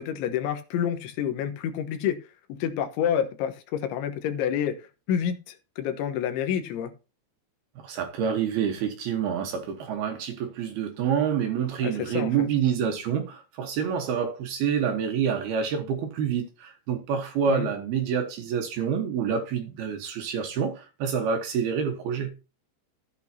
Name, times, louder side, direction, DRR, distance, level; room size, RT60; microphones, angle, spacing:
voice 1, 0.0-2.2 2.5-4.8 5.1-6.9 11.8-12.5 17.5-17.7, left 9 dB, 75° left, 3.5 m, -28 dB
voice 2, 7.8-22.3, right 7 dB, 65° right, 2.8 m, -27 dB
14.0 x 8.6 x 2.8 m
omnidirectional pair, 5.5 m